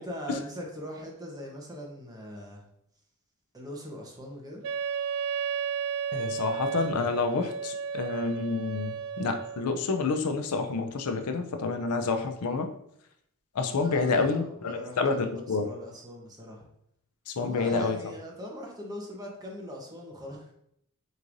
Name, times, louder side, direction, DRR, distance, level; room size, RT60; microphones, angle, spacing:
voice 1, 0.0-2.6 3.5-4.7 13.8-16.6 17.4-20.5, equal, 15° right, -1 dB, 0.9 m, -41 dB
Wind instrument woodwind instrument, 4.6-9.7, right 6 dB, 85° right, 0.4 m, -33 dB
voice 2, 6.1-12.7 13.6-15.7 17.3-18.0, left 4 dB, 90° left, 6 dB, 0.6 m, -28 dB
6.5 x 3.2 x 2.6 m, 0.74 s
head